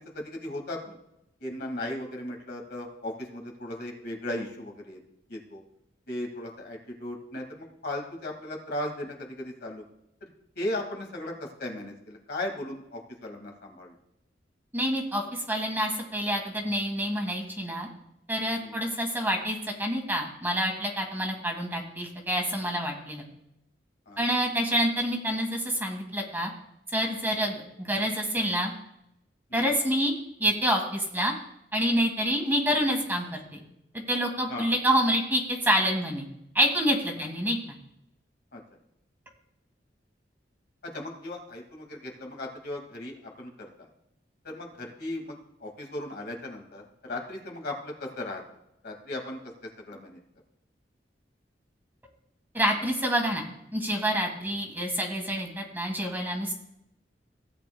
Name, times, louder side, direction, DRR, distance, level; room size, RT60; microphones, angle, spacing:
voice 1, 0.1-1.0 1.4-5.0 5.3-5.6 6.1-9.8 10.2-10.3 10.6-13.9 18.6-18.8 24.1-24.2 29.5-29.7 34.5-34.7 38.5-38.6 40.8-43.9 44.4-48.4 48.8-49.5 49.8-50.2, left 1 dB, 65° left, 2 dB, 2.0 m, -37 dB
voice 2, 14.7-17.9 18.3-23.2 24.2-26.5 26.9-28.7 29.5-30.1 30.4-31.3 31.7-33.6 33.9-36.2 36.5-37.6 52.5-53.4 53.7-56.5, equal, 10° right, 2 dB, 1.6 m, -27 dB
16.5 x 9.0 x 2.2 m, 0.82 s
head